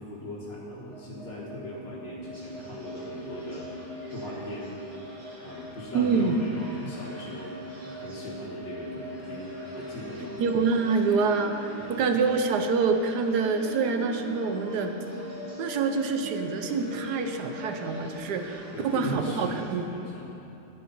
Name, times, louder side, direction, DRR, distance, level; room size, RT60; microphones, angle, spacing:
voice 1, 0.0-3.7 4.1-4.8 5.4-7.5 7.8-10.4 11.8-12.0 18.7-20.5, left 1 dB, 80° left, -7 dB, 2.3 m, -39 dB
sound 1, 0.9-18.5, equal, 50° left, 3.4 m, -41 dB
sound 2, 2.3-19.7, equal, 30° right, 2.2 m, -51 dB
voice 2, 5.9-6.4 10.4-14.9 15.6-19.9, right 4 dB, 70° right, 6 dB, 1.3 m, -26 dB
Organ, 6.4-17.1, right 5 dB, 55° right, 1.4 m, -47 dB
11.5 x 10.0 x 5.5 m, 2.8 s
omnidirectional pair, 1.9 m